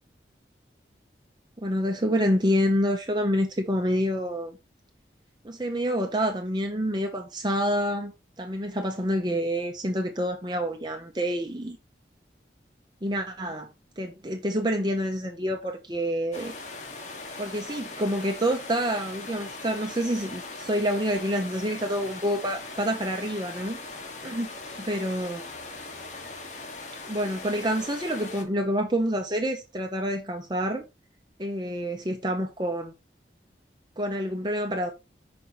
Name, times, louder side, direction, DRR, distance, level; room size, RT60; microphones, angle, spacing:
voice 1, 1.6-4.6 5.4-8.1 8.4-11.8 13.0-13.7 14.0-16.5 17.4-24.5 24.8-25.4 27.1-30.8 31.4-32.9 34.0-34.9, equal, 25° right, 1.0 m, -27 dB
sound 1, 16.3-28.4, left 3 dB, 40° left, 1.4 m, -40 dB
5.6 x 5.3 x 4.3 m
head